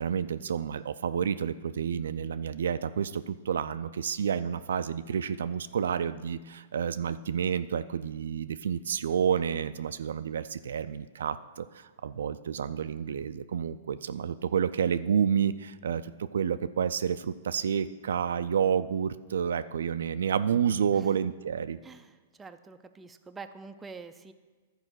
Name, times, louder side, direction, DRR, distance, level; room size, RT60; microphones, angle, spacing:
voice 1, 0.0-21.8, right 7 dB, 85° right, 12 dB, 0.4 m, -29 dB
voice 2, 22.4-24.3, right 4 dB, 10° right, 8 dB, 0.4 m, -45 dB
11.5 x 4.8 x 6.3 m, 1.4 s
hypercardioid pair, 145°, 0 cm